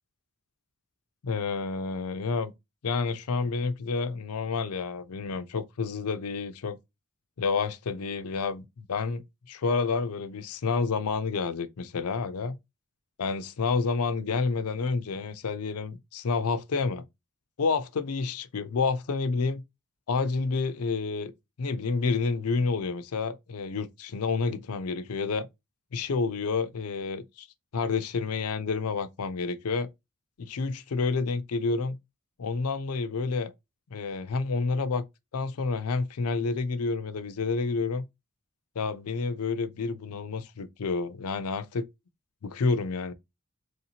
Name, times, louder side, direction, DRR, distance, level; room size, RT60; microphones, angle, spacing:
voice 1, 1.2-2.5 2.8-6.8 7.4-9.2 9.5-12.6 13.2-17.0 17.6-19.6 20.1-21.3 21.6-25.5 25.9-27.5 27.7-29.9 30.4-32.0 32.4-33.5 33.9-35.0 35.3-38.0 38.8-41.9 42.4-43.1, left 4 dB, 75° left, 0.5 m, -29 dB
3.1 x 2.8 x 2.7 m
head